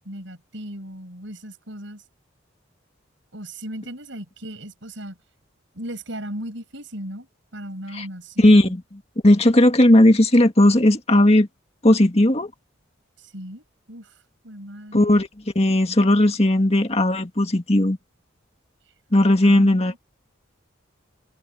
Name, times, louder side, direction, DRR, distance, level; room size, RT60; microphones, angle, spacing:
voice 1, 0.0-2.0 3.3-5.2 5.7-8.7 13.2-14.1 14.4-15.1 19.4-20.0, right 1 dB, 65° right, 6.6 m, -37 dB
voice 2, 8.4-8.8 9.2-11.5 11.8-12.5 14.9-15.3 15.6-18.0 19.1-19.9, left 1 dB, 30° left, 2.1 m, -16 dB
head